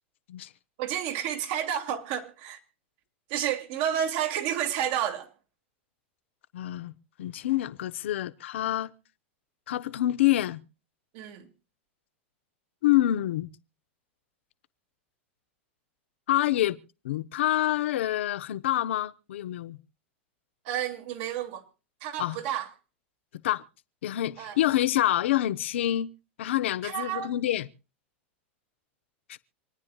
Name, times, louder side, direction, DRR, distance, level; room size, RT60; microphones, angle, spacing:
voice 1, 0.8-2.6 3.3-5.3 11.1-11.5 20.6-21.6 22.0-22.7 24.4-24.6 26.8-27.3, right 10 dB, 60° right, 2.5 m, -30 dB
voice 2, 6.5-6.9 7.2-8.9 9.7-10.6 12.8-13.5 16.3-16.8 17.0-19.8 22.2-22.4 23.4-23.6 24.0-26.1 26.4-27.7 29.3-29.4, left 14 dB, 75° left, 0.8 m, -26 dB
27.0 x 9.7 x 2.3 m
hypercardioid pair, 105°, 6 cm